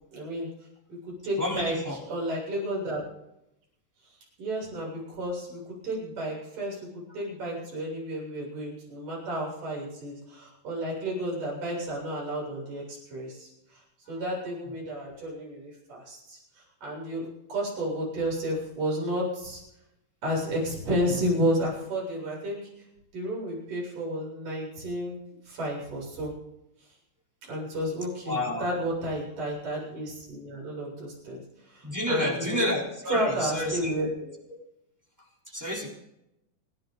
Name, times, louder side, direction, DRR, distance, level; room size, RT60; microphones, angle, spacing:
voice 1, 0.1-0.5 0.9-1.8 2.1-3.0 4.4-13.8 14.1-16.4 16.8-19.6 20.2-22.7 23.1-26.3 27.5-32.7 33.1-34.1, equal, 70° right, -4 dB, 8.9 m, -32 dB
voice 2, 1.4-2.0 14.1-14.2 28.2-28.7 31.8-33.9 35.5-35.9, left 1 dB, 5° right, -3 dB, 3.4 m, -29 dB
29.5 x 10.5 x 4.0 m, 0.86 s
omnidirectional pair, 3.8 m